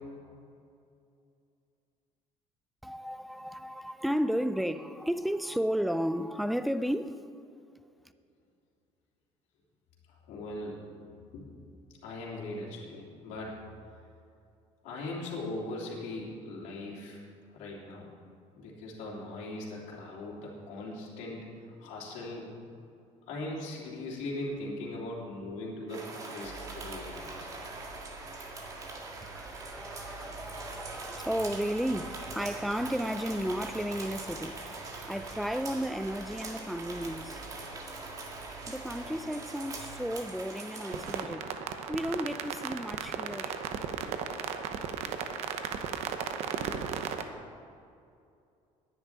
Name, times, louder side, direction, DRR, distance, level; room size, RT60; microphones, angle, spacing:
voice 1, 2.8-7.3 28.7-28.8 29.2-37.4 38.7-41.5 41.9-43.6, equal, ahead, 0.3 m, -33 dB
voice 2, 10.1-10.8 11.3-11.5 12.0-13.6 14.8-17.2 17.5-18.1 18.5-21.5 21.8-22.5 23.3-27.5, left 2 dB, 80° left, 3.1 m, -39 dB
sound 1, 25.9-41.2, right 2 dB, 25° right, 1.8 m, -42 dB
sound 2, 26.4-40.2, right 4 dB, 85° right, 2.0 m, -51 dB
sound 3, 40.9-47.2, right 7 dB, 60° right, 0.9 m, -35 dB
10.0 x 7.4 x 9.5 m
cardioid pair, 165°, 12 cm